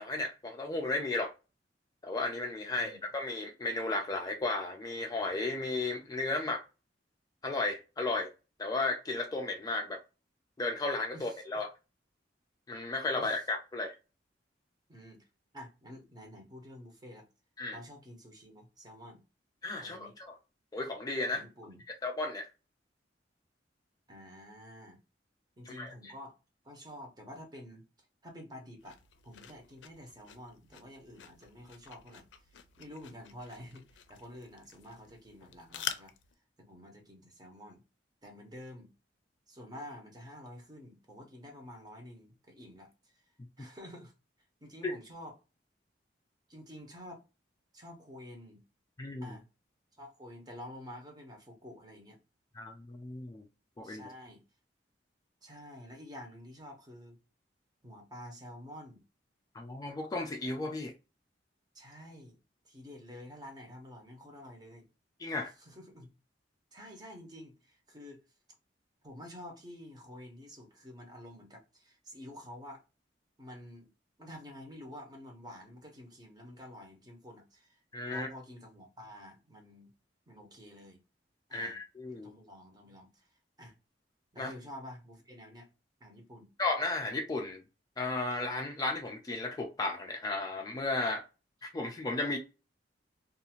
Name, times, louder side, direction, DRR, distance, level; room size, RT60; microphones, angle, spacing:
voice 1, 0.0-1.3 2.0-6.6 7.4-8.3 8.6-10.0 10.6-11.7 12.7-13.9 17.6-17.8 19.6-20.4 20.7-21.4 22.0-22.5 25.7-26.1 44.8-44.9 49.0-49.4 52.6-53.4 53.8-54.1 59.5-60.9 65.2-65.5 77.9-78.3 81.5-82.3 84.4-84.5 86.6-87.6 88.0-91.2 91.6-92.4, left 2 dB, 20° left, 0.3 m, -34 dB
voice 2, 2.7-3.0 11.1-11.4 13.1-13.4 14.9-15.3 15.5-17.3 17.7-19.2 19.8-20.1 21.3-21.8 24.1-25.0 25.6-26.4 26.6-27.8 28.2-29.0 29.2-32.3 32.8-36.1 36.6-37.8 38.2-38.9 39.5-42.9 43.6-44.1 44.6-45.4 46.5-47.2 47.7-48.6 49.2-49.4 50.0-52.2 53.8-54.4 55.4-57.2 57.8-59.0 61.7-62.4 62.6-64.9 65.6-66.1 66.7-68.2 69.0-72.8 73.4-73.9 74.2-77.8 78.1-79.9 80.3-81.0 81.5-81.8 82.1-83.3 83.6-83.7 84.3-85.7 86.0-86.5, equal, 25° right, 0.8 m, -49 dB
sound 1, 28.8-36.3, left 9 dB, 85° left, 0.4 m, -46 dB
2.6 x 2.4 x 2.8 m
head